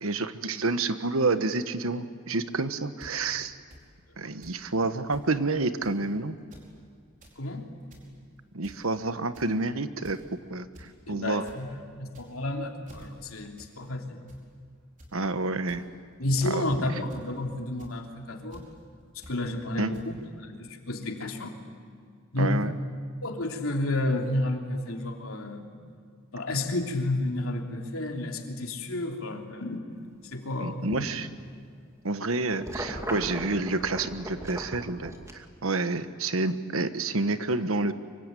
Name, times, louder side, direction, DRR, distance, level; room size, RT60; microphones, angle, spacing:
voice 1, 0.0-3.6 4.2-6.3 8.5-10.2 10.5-11.4 15.1-15.9 16.4-16.6 19.8-19.9 22.4-22.8 30.6-31.3 32.0-37.9, right 3 dB, 75° right, 11 dB, 1.3 m, -29 dB
sound 1, 3.0-3.1 3.7-3.8 4.4-4.6 4.8-4.9 5.1-5.3 5.8-6.0 6.4-6.7 7.0-7.4 7.8-8.1 8.6-8.9 9.3-9.6 10.0-10.3 10.7-10.9 11.2-11.6 12.1-12.5 12.8-13.1 13.6-13.7 14.0-14.4 15.0-15.1 15.7-15.8 16.4-16.7 17.1-17.4 17.8-17.9 18.5-18.6 19.2-19.4 19.9-20.0, equal, 40° right, 5.0 m, -50 dB
voice 2, 7.4-7.7 11.1-14.2 16.2-18.6 19.3-20.0 20.4-21.6 22.3-22.7 23.2-25.7 26.3-29.8 30.3-30.9, left 1 dB, 80° left, 2 dB, 3.2 m, -31 dB
sound 2, 32.5-35.3, right 1 dB, 15° right, 2.3 m, -37 dB
25.0 x 24.0 x 9.1 m, 2.1 s
head